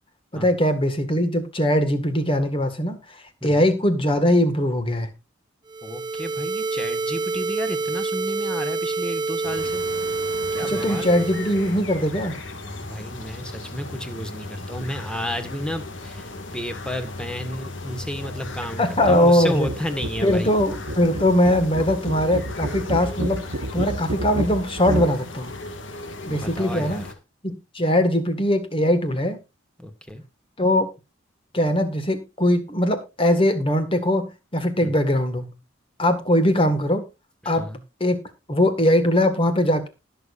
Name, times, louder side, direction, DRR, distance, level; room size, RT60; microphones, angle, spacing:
voice 1, 0.3-3.0 3.4-5.1 10.7-12.4 18.8-19.7 20.2-25.5 26.3-27.0 27.4-29.4 30.6-30.9 31.5-35.5 36.0-37.1 37.5-37.7 38.0-38.2 38.5-39.9, left 1 dB, 30° left, 9 dB, 1.8 m, -21 dB
sound 1, 5.7-11.8, right 3 dB, 20° right, 0.4 m, -27 dB
voice 2, 5.8-9.8 10.5-11.2 12.8-20.5 26.3-27.1 29.8-30.2 34.8-34.9 37.4-37.8, equal, 5° left, 8 dB, 1.5 m, -32 dB
sound 2, 9.4-27.1, left 2 dB, 80° left, 2.0 m, -36 dB
sound 3, 19.0-19.3 19.5-25.2, right 1 dB, 85° right, 1.1 m, -30 dB
20.0 x 6.9 x 2.5 m, 0.26 s
head